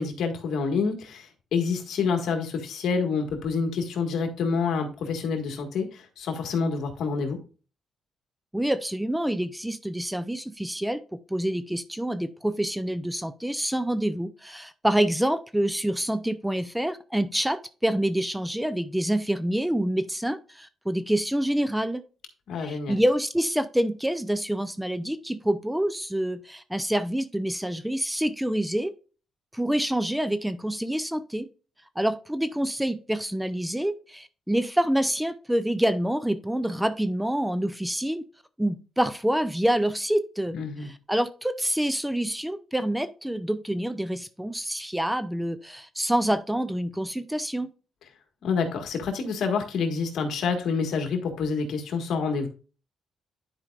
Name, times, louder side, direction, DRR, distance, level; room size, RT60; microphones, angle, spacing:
voice 1, 0.0-7.4 22.5-23.0 40.5-40.9 48.4-52.5, left 5 dB, 75° left, 4 dB, 1.6 m, -27 dB
voice 2, 8.5-11.0 11.3-22.0 22.6-28.9 29.5-31.5 32.0-38.2 38.6-47.7, right 1 dB, 5° right, 13 dB, 0.5 m, -27 dB
10.5 x 4.9 x 2.4 m, 0.36 s
cardioid pair, 105°, 0 cm